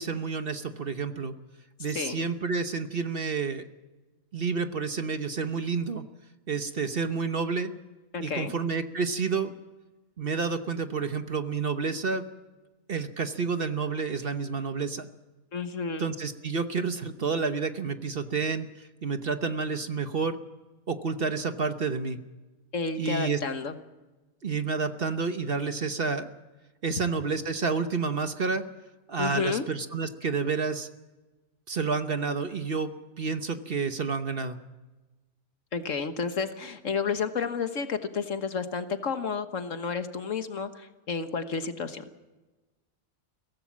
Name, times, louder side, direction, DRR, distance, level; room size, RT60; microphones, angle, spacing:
voice 1, 0.0-1.3 1.8-3.6 4.3-6.0 6.5-7.7 8.2-9.5 10.2-12.2 12.9-15.1 16.0-20.4 20.9-22.2 23.0-23.4 24.4-26.3 26.8-28.6 29.1-30.9 31.7-32.9 33.2-34.6, right 5 dB, 45° right, 9 dB, 1.1 m, -29 dB
voice 2, 8.1-8.5 15.5-16.1 22.7-23.8 29.2-29.6 35.7-42.1, left 5 dB, 65° left, 8 dB, 1.6 m, -31 dB
23.0 x 17.0 x 7.3 m, 1.2 s
omnidirectional pair, 1.5 m